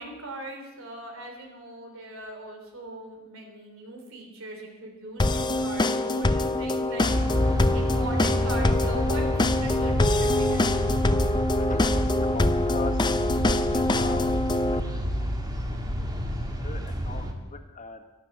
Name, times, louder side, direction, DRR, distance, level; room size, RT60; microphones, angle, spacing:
voice 1, 0.0-10.8, right 2 dB, 70° right, 1 dB, 3.4 m, -39 dB
sound 1, 5.2-14.8, left 2 dB, 20° left, 0.6 m, -25 dB
sound 2, 7.0-17.3, equal, 20° right, 1.8 m, -28 dB
voice 2, 8.8-9.1 9.6-9.8 11.5-15.3 16.0-16.1 16.4-18.0, left 3 dB, 35° left, 6 dB, 1.4 m, -41 dB
12.5 x 11.5 x 8.3 m, 1.1 s
head